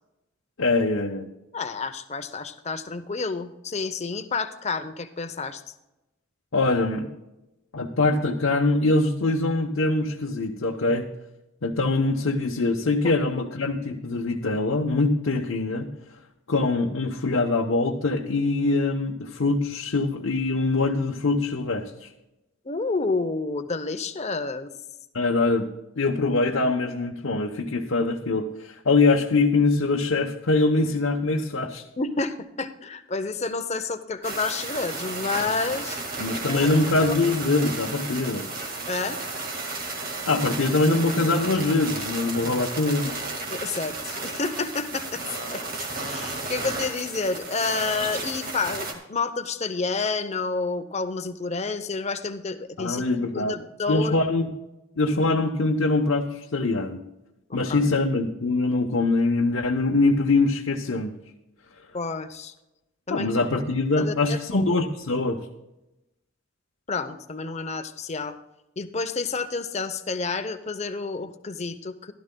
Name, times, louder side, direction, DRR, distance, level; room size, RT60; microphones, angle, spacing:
voice 1, 0.6-1.3 6.5-7.1 7.7-11.1 11.6-15.9 16.5-22.1 25.1-25.7 26.0-31.8 36.2-38.5 40.3-43.2 52.8-53.6 53.9-54.5 55.0-57.0 57.5-61.1 63.1-65.4, left 3 dB, 75° left, 0 dB, 0.9 m, -23 dB
voice 2, 1.5-5.6 22.7-24.7 32.0-36.0 36.5-36.7 37.0-37.2 38.9-39.2 43.5-45.2 45.5-45.7 46.0-54.1 57.5-57.8 61.9-62.5 63.1-63.3 64.0-64.8 66.9-68.4 68.8-72.1, left 4 dB, 30° left, 9 dB, 0.7 m, -29 dB
sound 1, 34.2-48.9, right 3 dB, 45° right, 1.8 m, -33 dB
15.5 x 12.5 x 2.2 m, 0.96 s
head